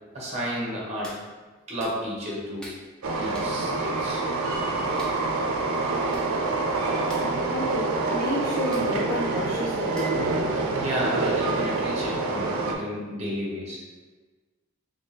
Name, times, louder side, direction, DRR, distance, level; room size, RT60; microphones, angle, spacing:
voice 1, 0.1-1.2 1.7-2.7 3.2-4.2 10.7-13.8, equal, 30° right, -4 dB, 0.8 m, -32 dB
Hands, 1.0-1.2 1.8-2.0 2.6-2.8 3.3-3.5 5.0-5.2 5.8-5.9 6.1-6.3 6.6-6.7 7.0-7.3 8.7-8.9 10.0-10.3 10.7-10.8, equal, 5° left, 0.5 m, -44 dB
Train, 3.0-12.8, right 3 dB, 80° right, 0.5 m, -26 dB
voice 2, 7.5-10.3, left 1 dB, 20° left, -9 dB, 1.1 m, -31 dB
3.5 x 3.2 x 2.7 m, 1.3 s
head